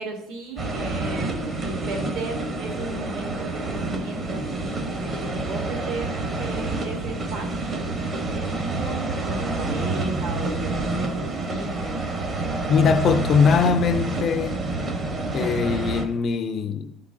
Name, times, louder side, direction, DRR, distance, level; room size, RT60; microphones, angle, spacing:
voice 1, 0.0-12.0, right 2 dB, 65° right, 1.9 m, -35 dB
sound 1, 0.6-16.0, right 2 dB, 25° right, 0.8 m, -28 dB
voice 2, 12.7-14.6 15.3-16.9, left 6 dB, 35° left, 0.4 m, -21 dB
11.0 x 3.8 x 3.7 m
cardioid pair, 160°, 0 cm